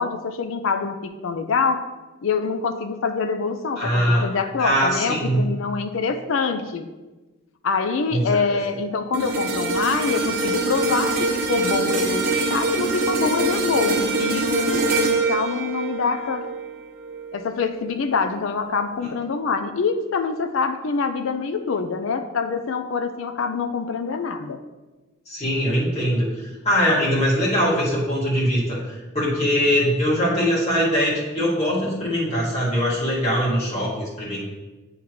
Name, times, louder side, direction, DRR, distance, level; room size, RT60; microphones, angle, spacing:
voice 1, 0.0-1.9 2.2-6.9 7.6-16.5 17.3-24.6, left 5 dB, 60° left, 7 dB, 0.4 m, -25 dB
voice 2, 3.8-4.2 4.6-5.4 8.1-8.2 8.5-8.6 25.3-26.3 26.6-34.5, equal, 30° left, -7 dB, 1.9 m, -22 dB
sound 1, 9.1-17.5 17.9-18.1, right 2 dB, 45° right, 1.0 m, -24 dB
10.0 x 3.6 x 3.1 m, 1.2 s
head